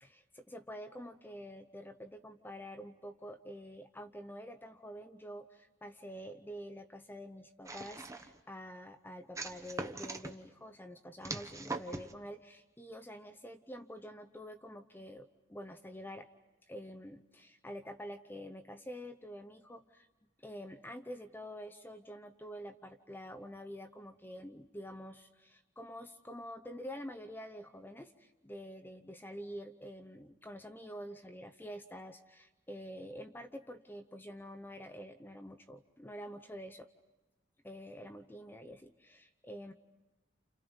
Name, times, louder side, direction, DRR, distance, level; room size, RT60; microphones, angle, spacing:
voice 1, 0.0-16.3 16.7-20.1 20.4-36.9 37.6-39.7, equal, 10° left, 7 dB, 0.8 m, -47 dB
sound 1, 7.7-8.4 9.4-10.3 11.2-12.1, right 2 dB, 15° right, 1.0 m, -41 dB
29.5 x 29.5 x 5.4 m, 1.0 s
head